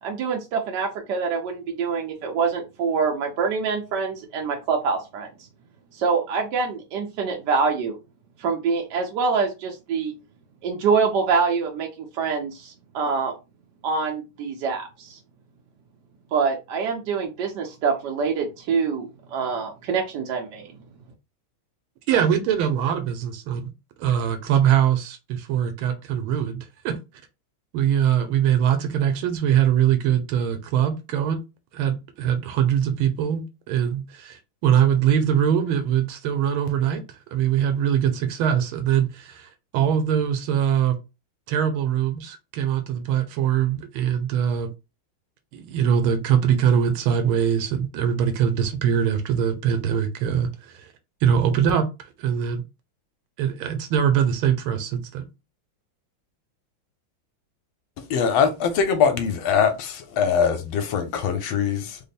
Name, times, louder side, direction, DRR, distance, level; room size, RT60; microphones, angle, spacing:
voice 1, 0.0-5.3 5.9-8.0 8.4-10.1 10.6-13.3 13.8-15.2 16.3-20.7, right 5 dB, 70° right, 1.1 m, -25 dB
voice 2, 22.1-23.7 24.0-26.9 27.7-31.4 31.7-37.0 37.3-41.0 41.5-44.7 45.5-50.9 51.2-52.6 53.4-55.2, right 9 dB, 90° right, 1.5 m, -22 dB
voice 3, 58.1-62.0, left 6 dB, 80° left, 1.5 m, -22 dB
3.5 x 2.0 x 4.0 m
omnidirectional pair, 2.2 m